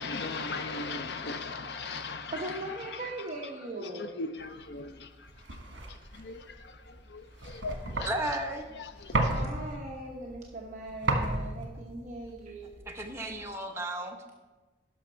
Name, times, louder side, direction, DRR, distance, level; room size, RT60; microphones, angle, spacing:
voice 1, 0.0-2.5 3.8-5.1 6.1-8.1 9.0-9.3, left 3 dB, 65° left, 0.6 m, -38 dB
voice 2, 2.3-4.2 9.3-12.9, right 2 dB, 40° right, 1.0 m, -39 dB
sound 1, 4.6-13.5, right 2 dB, 75° right, 1.4 m, -35 dB
voice 3, 8.0-8.7 12.9-14.2, right 1 dB, 15° right, 0.9 m, -34 dB
11.5 x 6.1 x 4.5 m
head